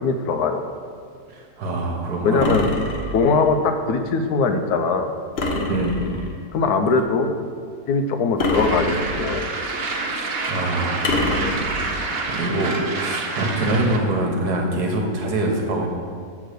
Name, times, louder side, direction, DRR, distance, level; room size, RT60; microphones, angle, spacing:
voice 1, 0.0-0.6 2.2-2.7 3.1-5.1 6.5-7.3 7.9-9.4 11.6-11.7, left 4 dB, 75° left, 6 dB, 1.1 m, -21 dB
voice 2, 1.3-2.6 5.7-6.0 10.1-11.3 12.3-12.7 13.0-15.9, right 2 dB, 75° right, 1 dB, 1.5 m, -24 dB
sound 1, 2.4-3.5 5.4-6.4 8.4-9.5 11.0-12.1, left 2 dB, 50° left, 0.9 m, -25 dB
sound 2, 8.5-14.0, right 3 dB, 50° right, 0.8 m, -28 dB
7.6 x 3.7 x 6.6 m, 2.1 s
omnidirectional pair, 1.7 m